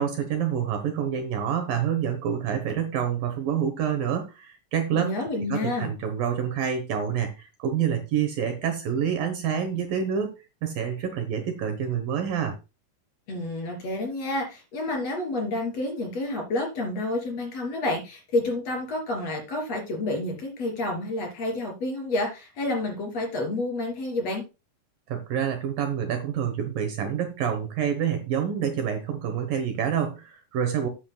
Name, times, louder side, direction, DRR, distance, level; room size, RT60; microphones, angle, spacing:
voice 1, 0.0-5.1 5.5-10.3 10.6-12.6 25.1-30.9, right 8 dB, 65° right, 6 dB, 2.5 m, -27 dB
voice 2, 4.9-5.9 13.3-24.4, left 2 dB, 40° left, 2 dB, 4.0 m, -29 dB
13.5 x 9.2 x 2.2 m, 0.28 s
omnidirectional pair, 4.7 m